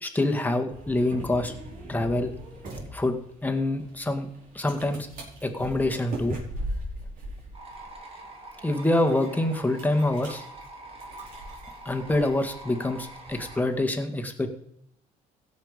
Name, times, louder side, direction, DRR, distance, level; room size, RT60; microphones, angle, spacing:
voice 1, 0.0-1.5 1.9-2.3 2.9-3.1 3.4-4.3 4.6-5.1 5.4-6.4 8.6-10.4 11.9-14.5, left 1 dB, 10° left, 4 dB, 1.9 m, -26 dB
sound 1, 0.7-13.8, right 1 dB, 60° right, 4.9 m, -40 dB
sound 2, 7.5-13.6, right 2 dB, 40° right, 3.2 m, -45 dB
16.5 x 7.0 x 5.2 m, 0.70 s
cardioid pair, 95°, 16 cm